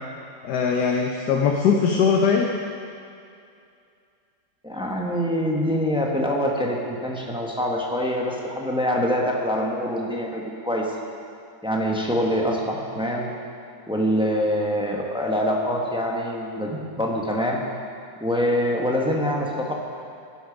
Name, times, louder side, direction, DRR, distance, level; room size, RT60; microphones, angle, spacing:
voice 1, 0.4-2.5, left 6 dB, 65° left, 0 dB, 1.3 m, -20 dB
voice 2, 4.6-10.9 11.6-13.3 13.9-17.6 18.2-19.7, equal, 5° right, -1 dB, 0.8 m, -25 dB
16.0 x 6.9 x 5.1 m, 2.5 s
omnidirectional pair, 2.0 m